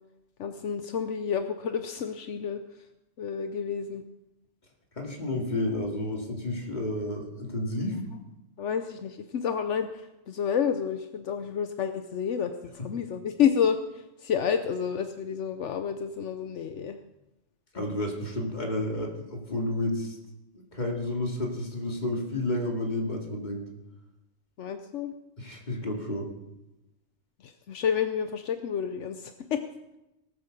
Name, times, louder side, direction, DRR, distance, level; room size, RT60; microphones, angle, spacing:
voice 1, 0.4-2.9 3.2-4.0 8.6-17.0 24.6-25.1 27.4-29.6, left 7 dB, 75° left, 8 dB, 1.1 m, -30 dB
voice 2, 5.0-8.0 17.7-20.2 20.5-23.7 25.4-26.3, left 1 dB, 40° left, 0 dB, 2.7 m, -31 dB
18.5 x 9.0 x 6.8 m, 0.96 s
omnidirectional pair, 1.2 m